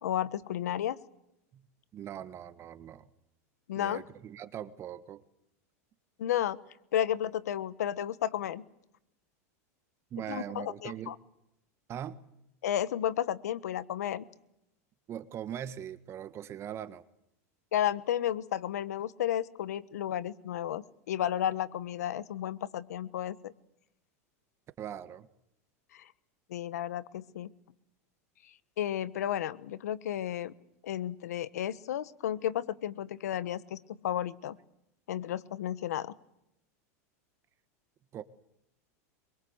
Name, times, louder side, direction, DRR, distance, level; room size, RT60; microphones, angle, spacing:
voice 1, 0.0-1.0 3.7-4.0 6.2-6.6 6.9-8.6 10.3-11.1 12.6-14.3 17.7-23.5 25.9-26.0 26.5-27.5 28.8-30.5 30.8-34.5 35.1-36.1, left 11 dB, 90° left, 15 dB, 1.3 m, -32 dB
voice 2, 1.9-3.1 3.7-5.2 10.1-11.2 11.9-12.3 15.1-17.0 24.8-25.3 38.1-38.2, right 10 dB, 35° right, 12 dB, 1.5 m, -41 dB
25.0 x 23.5 x 8.1 m, 0.81 s
supercardioid pair, 130°, 8 cm